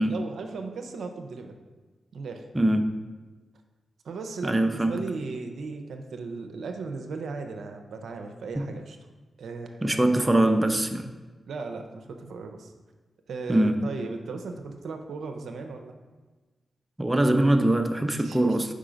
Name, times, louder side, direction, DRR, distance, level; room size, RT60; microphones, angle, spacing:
voice 1, 0.0-1.6 2.1-2.5 4.0-9.0 9.4-10.0 11.5-12.7 13.3-16.0 18.2-18.6, right 4 dB, 80° right, 5 dB, 0.5 m, -36 dB
voice 2, 2.5-3.0 4.4-5.1 8.6-8.7 9.8-11.1 13.5-14.0 17.0-18.7, right 1 dB, 15° right, 6 dB, 0.5 m, -23 dB
5.0 x 3.7 x 5.1 m, 1.3 s
cardioid pair, 55°, 0 cm